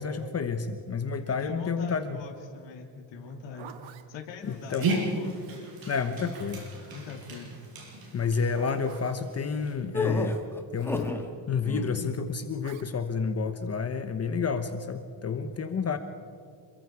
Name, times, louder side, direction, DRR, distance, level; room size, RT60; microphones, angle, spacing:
voice 1, 0.0-2.2 4.5-4.9 5.9-6.6 8.1-10.4 10.7-11.1 11.5-16.0, left 5 dB, 35° left, 8 dB, 1.1 m, -30 dB
voice 2, 1.3-5.4 6.2-6.3 6.9-7.6, left 5 dB, 75° left, 2 dB, 3.2 m, -43 dB
Zipper (clothing), 3.2-4.1 5.4-6.8 8.2-9.3 10.7-11.1 12.6-12.9, right 8 dB, 90° right, 1.7 m, -48 dB
Dog, 4.4-9.7, right 2 dB, 50° right, 6.6 m, -35 dB
sound 1, 9.9-11.3 11.6-12.1, left 3 dB, 5° left, 1.9 m, -31 dB
27.5 x 23.0 x 4.8 m, 2.3 s
cardioid pair, 160°, 44 cm